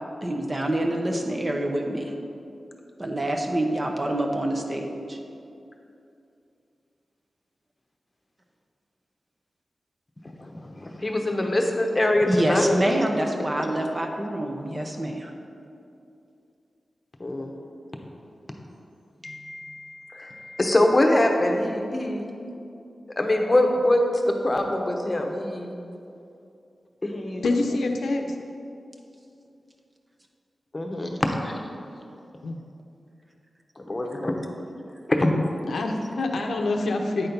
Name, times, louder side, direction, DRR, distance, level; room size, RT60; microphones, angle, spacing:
voice 1, 0.2-2.1 3.0-5.2 12.3-15.3, right 1 dB, 30° right, 2 dB, 0.9 m, -26 dB
voice 2, 10.4-12.8 17.2-17.5 19.2-22.3 23.2-25.8 27.0-27.4 30.7-31.6 33.8-34.8 35.1-35.3, left 1 dB, 30° left, 3 dB, 1.0 m, -24 dB
voice 3, 27.4-28.2 32.4-32.6 35.7-37.3, left 2 dB, 90° left, 2 dB, 0.6 m, -26 dB
9.0 x 4.3 x 5.4 m, 2.6 s
cardioid pair, 65°, 0 cm